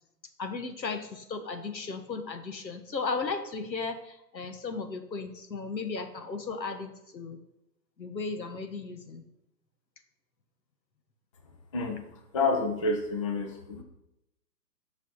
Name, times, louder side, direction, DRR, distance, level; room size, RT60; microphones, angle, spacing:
voice 1, 0.4-7.4 8.0-9.2, left 4 dB, 85° left, 7 dB, 1.4 m, -35 dB
voice 2, 12.3-13.8, left 3 dB, 20° left, 4 dB, 0.5 m, -28 dB
8.5 x 6.1 x 4.0 m, 0.86 s
hypercardioid pair, 140°, 50 cm